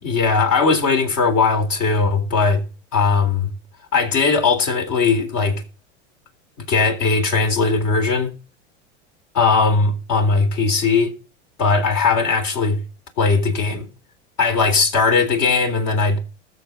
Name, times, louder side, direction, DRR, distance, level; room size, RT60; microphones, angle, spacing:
voice 1, 0.0-2.6 2.9-3.5 3.9-5.6 6.7-8.3 9.3-11.1 11.6-12.8 13.2-13.9 14.4-16.2, left 4 dB, 50° left, 3.7 m, -18 dB
21.0 x 7.1 x 3.9 m
hypercardioid pair, 100°, 35 cm